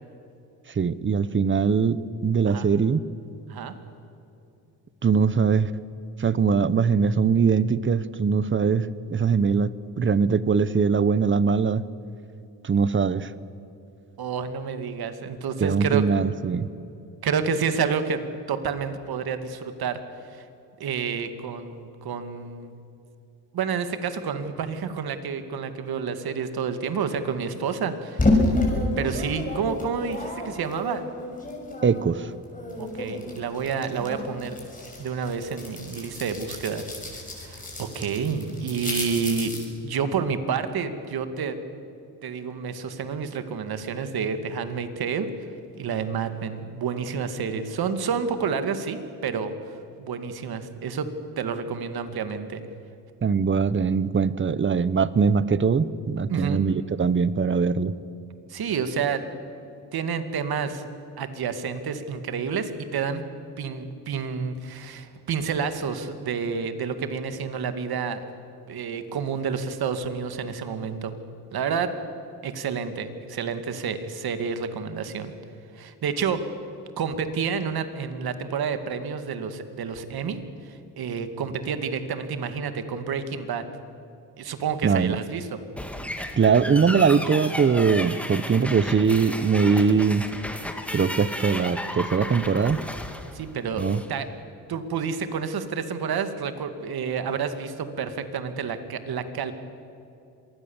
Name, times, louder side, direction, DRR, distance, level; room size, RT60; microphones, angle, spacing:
voice 1, 0.7-3.0 5.0-5.7 6.2-9.7 10.0-11.8 12.6-13.3 15.6-16.7 31.8-32.3 53.2-57.9 84.8-85.2 86.4-90.3 90.9-92.8 93.8-94.0, right 5 dB, 30° right, 17 dB, 0.9 m, -22 dB
voice 2, 14.2-16.3 17.2-20.0 20.3-20.4 20.8-22.7 23.5-28.5 29.0-31.0 32.8-34.7 35.0-39.6 39.8-41.6 42.2-45.3 45.8-51.1 51.4-52.6 56.3-56.6 58.5-59.2 59.9-60.9 61.2-63.2 63.6-68.2 68.7-71.1 71.5-71.9 72.4-75.3 75.7-76.4 77.0-83.6 84.4-85.5 93.3-94.3 94.7-99.5, right 6 dB, 60° right, 9 dB, 2.1 m, -29 dB
sound 1, 28.2-32.1 32.4-39.7, left 2 dB, 20° left, 6.7 m, -30 dB
sound 2, 85.8-94.1, left 1 dB, 5° left, 2.1 m, -34 dB
26.5 x 19.5 x 7.2 m, 2.6 s
cardioid pair, 90°, 41 cm